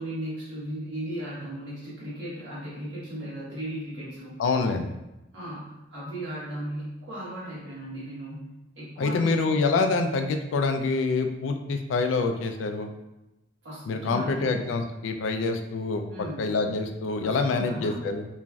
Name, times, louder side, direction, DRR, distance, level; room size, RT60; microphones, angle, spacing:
voice 1, 0.0-4.4 5.3-8.5 8.8-9.6 13.6-14.6 16.1-16.5 17.2-18.0, right 1 dB, 70° right, -8 dB, 1.3 m, -36 dB
voice 2, 4.4-4.9 9.0-12.9 13.9-18.3, left 3 dB, 85° left, 6 dB, 0.3 m, -26 dB
3.0 x 2.5 x 2.3 m, 0.94 s
head